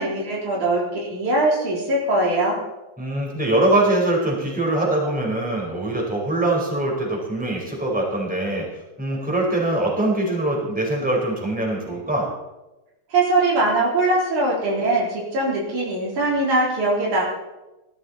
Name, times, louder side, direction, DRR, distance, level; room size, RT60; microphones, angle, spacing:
voice 1, 0.0-2.6 13.1-17.2, right 2 dB, 80° right, -3 dB, 5.3 m, -21 dB
voice 2, 3.0-8.7 9.0-12.3, right 1 dB, 5° right, -2 dB, 4.3 m, -23 dB
18.5 x 14.0 x 4.2 m, 1.0 s
omnidirectional pair, 3.4 m